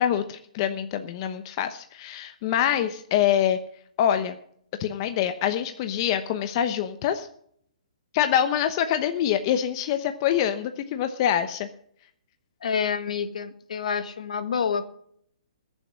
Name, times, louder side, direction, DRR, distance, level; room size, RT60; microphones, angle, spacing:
voice 1, 0.0-3.6 4.0-4.4 4.8-7.3 8.1-11.7, left 10 dB, 35° left, 9 dB, 0.9 m, -25 dB
voice 2, 12.6-14.9, left 6 dB, 70° left, 10 dB, 1.7 m, -28 dB
20.5 x 7.2 x 6.2 m, 0.65 s
hypercardioid pair, 145°, 4 cm